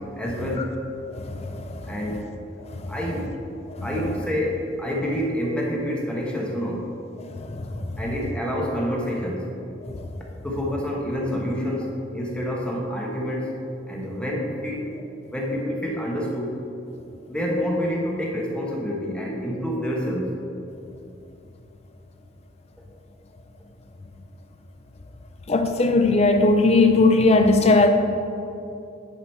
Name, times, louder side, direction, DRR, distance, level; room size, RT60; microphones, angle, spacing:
voice 1, 0.2-0.7 1.9-2.3 2.9-3.4 3.8-6.8 8.0-9.5 10.4-13.5 13.9-14.9 15.3-16.5 17.3-20.3, equal, 5° left, -3 dB, 1.1 m, -27 dB
voice 2, 25.5-27.9, left 3 dB, 30° left, 6 dB, 0.4 m, -18 dB
9.9 x 4.9 x 4.4 m, 2.7 s
head